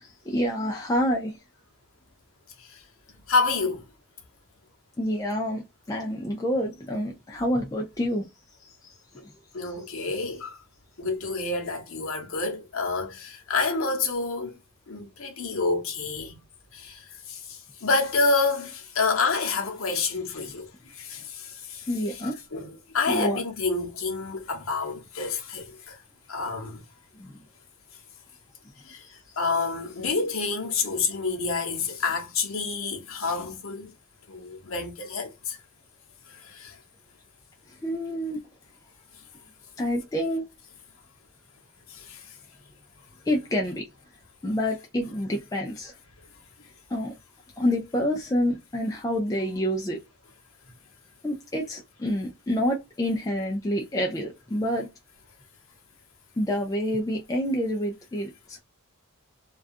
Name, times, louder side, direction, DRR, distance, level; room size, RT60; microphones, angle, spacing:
voice 1, 0.2-1.4 5.0-8.3 8.6-9.0 21.9-22.4 23.1-23.4 27.2-27.4 29.0-29.2 37.7-38.4 39.8-40.5 43.3-43.9 44.4-45.9 46.9-47.1 47.6-50.0 51.2-54.9 56.4-58.6, equal, 15° left, 0.3 m, -28 dB
voice 2, 3.3-3.8 9.2-9.3 9.5-10.6 11.0-14.6 14.9-16.4 16.7-22.2 22.5-26.0 26.3-26.8 28.9-33.9 34.3-35.6 36.3-36.8 41.9-42.4, left 4 dB, 65° left, 0.8 m, -28 dB
2.3 x 2.3 x 2.5 m
head